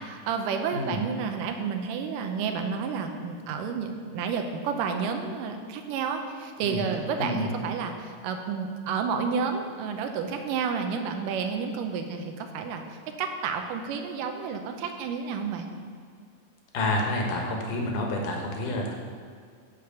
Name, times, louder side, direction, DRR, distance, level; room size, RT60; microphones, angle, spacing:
voice 1, 0.0-12.8 13.2-15.7, right 6 dB, 80° right, 5 dB, 2.3 m, -30 dB
voice 2, 0.7-1.1 6.6-6.9 7.2-7.5 16.7-18.9, left 1 dB, 70° left, 1 dB, 2.8 m, -29 dB
10.5 x 5.2 x 7.1 m, 2.1 s
omnidirectional pair, 4.1 m